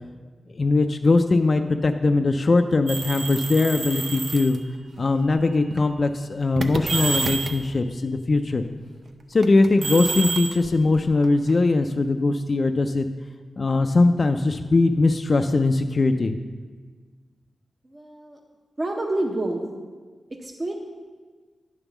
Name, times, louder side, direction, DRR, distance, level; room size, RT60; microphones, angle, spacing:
voice 1, 0.5-4.6 5.0-8.6 9.3-13.1 13.6-16.4, left 3 dB, 40° left, 6 dB, 0.3 m, -21 dB
sound 1, 2.9-4.6 5.5-5.8 6.6-7.7 9.4-11.5, right 4 dB, 60° right, 0.5 m, -28 dB
voice 2, 17.8-18.4 18.8-19.6 20.3-20.7, right 1 dB, 30° right, 0 dB, 0.7 m, -28 dB
9.8 x 3.5 x 7.0 m, 1.5 s
wide cardioid pair, 100°, 0 cm